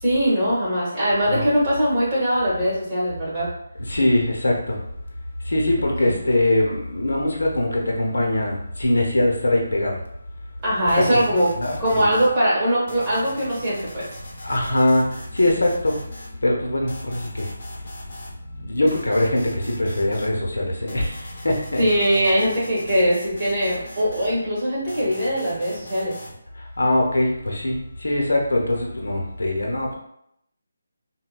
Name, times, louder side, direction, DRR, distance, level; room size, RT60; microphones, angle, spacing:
voice 1, 0.0-3.5 6.0-6.1 10.6-11.5 11.8-14.0 21.8-26.1, equal, 20° right, -8 dB, 1.5 m, -21 dB
voice 2, 3.8-4.8 5.5-10.0 10.9-11.2 11.6-12.1 14.4-16.0 16.4-17.5 18.6-21.8 26.8-29.9, left 1 dB, 75° left, 0 dB, 0.8 m, -22 dB
sound 1, 10.9-12.4 12.9-16.4 16.9-18.4 18.9-20.4 20.9-24.4 24.9-26.4, equal, 40° left, 0.9 m, -40 dB
4.1 x 2.2 x 2.2 m, 0.75 s
figure-of-eight pair, 160°, 0 cm